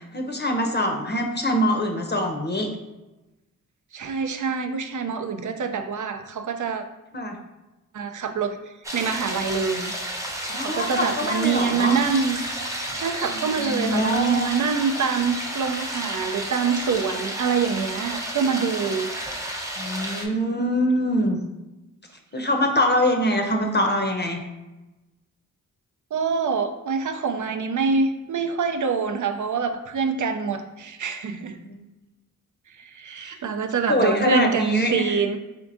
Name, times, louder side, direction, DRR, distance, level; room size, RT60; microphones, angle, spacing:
voice 1, 0.0-2.7 7.1-7.4 10.5-12.0 13.3-14.5 19.8-21.4 22.3-24.4 31.6-31.8 33.9-35.2, left 1 dB, 30° left, 3 dB, 0.6 m, -24 dB
voice 2, 3.9-6.8 7.9-8.6 8.9-9.9 10.5-12.4 12.9-19.1 26.1-31.6 32.8-35.4, right 5 dB, 60° right, 7 dB, 0.5 m, -25 dB
sound 1, 8.8-20.3, right 1 dB, 10° right, 0.7 m, -32 dB
4.5 x 3.5 x 2.6 m, 1.0 s
wide cardioid pair, 70°, 33 cm